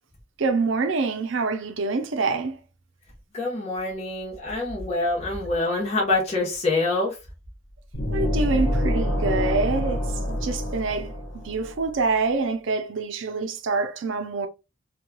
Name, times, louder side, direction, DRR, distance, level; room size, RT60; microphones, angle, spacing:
voice 1, 0.4-2.6 8.1-14.5, right 4 dB, 75° right, 0.5 m, -26 dB
voice 2, 3.3-7.2, left 2 dB, 35° left, 0.9 m, -25 dB
sound 1, 7.9-11.8, equal, 85° left, 1.1 m, -26 dB
3.0 x 2.3 x 2.2 m
head